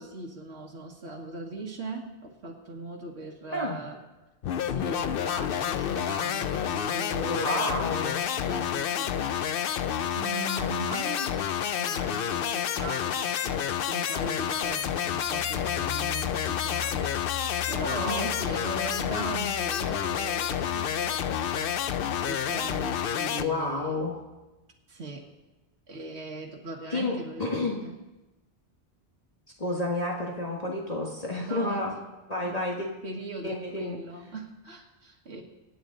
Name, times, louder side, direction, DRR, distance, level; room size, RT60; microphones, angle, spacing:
voice 1, 0.0-4.0 4.6-7.9 8.3-9.3 10.0-11.4 11.8-17.2 17.7-21.8 22.2-24.0 24.9-25.3 25.9-27.5 27.8-28.0 31.4-31.9 32.4-35.4, right 2 dB, 80° right, -1 dB, 1.8 m, -39 dB
voice 2, 3.5-3.8 7.3-8.2 18.0-18.3 23.4-24.2 26.9-27.8 29.6-31.9 32.3-32.9 33.4-34.0, left 2 dB, 35° left, -1 dB, 1.6 m, -30 dB
sound 1, 4.4-23.5, left 9 dB, 65° left, 0.7 m, -29 dB
sound 2, 14.6-24.2, left 17 dB, 85° left, 1.9 m, -42 dB
24.5 x 9.0 x 3.9 m, 1.1 s
omnidirectional pair, 1.1 m